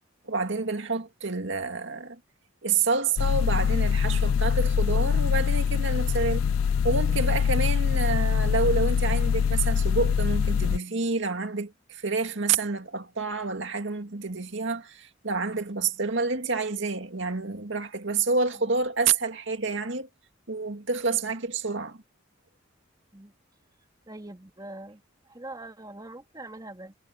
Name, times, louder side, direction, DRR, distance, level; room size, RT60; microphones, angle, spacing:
voice 1, 0.3-2.2 2.6-6.5 6.8-20.1 20.5-22.0, right 4 dB, 65° right, 2.3 m, -28 dB
sound 1, 3.2-10.8, left 7 dB, 90° left, 0.3 m, -24 dB
voice 2, 24.1-26.9, right 2 dB, 20° right, 2.9 m, -43 dB
head